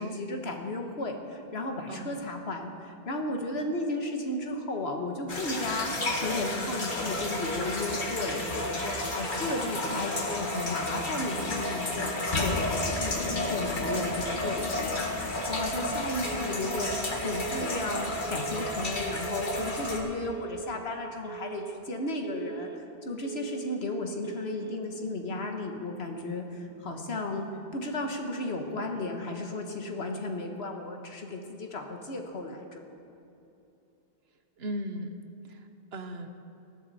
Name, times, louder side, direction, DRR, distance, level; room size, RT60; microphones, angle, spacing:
voice 1, 0.0-5.9 6.2-32.8, left 2 dB, 85° left, 3 dB, 1.6 m, -34 dB
sound 1, 5.3-20.0, left 1 dB, 50° left, 1.8 m, -31 dB
Telephone, 16.2-16.8 17.2-17.8 18.2-18.8 19.2-19.8 20.2-20.8 21.2-21.8 22.2-22.8 23.2-23.8 24.2-24.8, right 8 dB, 10° right, 0.8 m, -41 dB
voice 2, 34.6-35.1 35.4-36.3, right 1 dB, 80° right, 6 dB, 1.3 m, -37 dB
19.5 x 14.5 x 4.2 m, 2.7 s
omnidirectional pair, 1.0 m